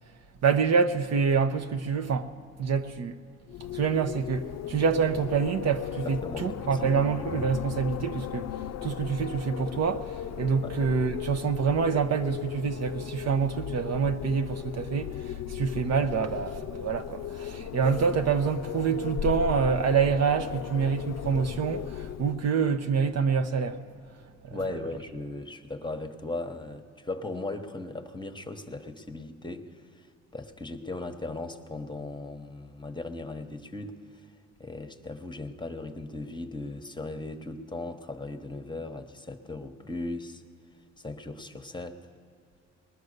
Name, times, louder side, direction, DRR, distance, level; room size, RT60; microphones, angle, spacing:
voice 1, 0.4-3.2 3.7-23.8 24.4-24.6, right 6 dB, 60° right, 0.8 m, -27 dB
Wind, 3.5-22.5, left 10 dB, 60° left, 0.5 m, -37 dB
voice 2, 6.0-7.0 10.6-10.7 24.5-29.7 29.9-30.1 30.3-34.2 34.6-40.4 41.0-42.0, left 2 dB, 15° left, 1.0 m, -37 dB
20.5 x 10.5 x 6.6 m
cardioid pair, 90°, 30 cm